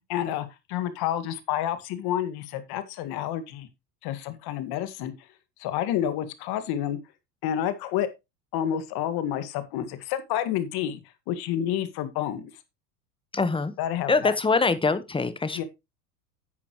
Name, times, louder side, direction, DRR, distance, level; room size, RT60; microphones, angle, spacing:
voice 1, 0.1-3.7 4.0-5.1 5.6-7.0 7.4-8.1 8.5-11.0 11.3-12.5 13.8-14.4 15.5-15.6, left 11 dB, 50° left, 2.0 m, -29 dB
voice 2, 13.3-13.7 14.1-15.6, left 4 dB, 10° left, 1.2 m, -24 dB
11.0 x 8.4 x 3.1 m
hypercardioid pair, 100°, 48 cm